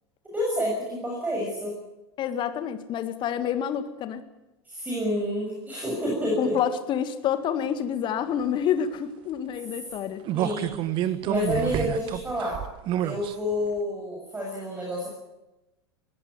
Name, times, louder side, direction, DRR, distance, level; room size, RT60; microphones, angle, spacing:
voice 1, 0.2-1.7 4.6-6.6 10.3-12.6 13.0-15.1, left 1 dB, 10° right, -3 dB, 7.3 m, -29 dB
voice 2, 2.2-4.2 6.4-10.2, left 9 dB, 35° left, 10 dB, 2.0 m, -28 dB
sound 1, 10.3-13.3 13.8-13.9, right 12 dB, 35° right, 1.3 m, -28 dB
20.5 x 17.0 x 9.5 m, 0.98 s
figure-of-eight pair, 85°, 14 cm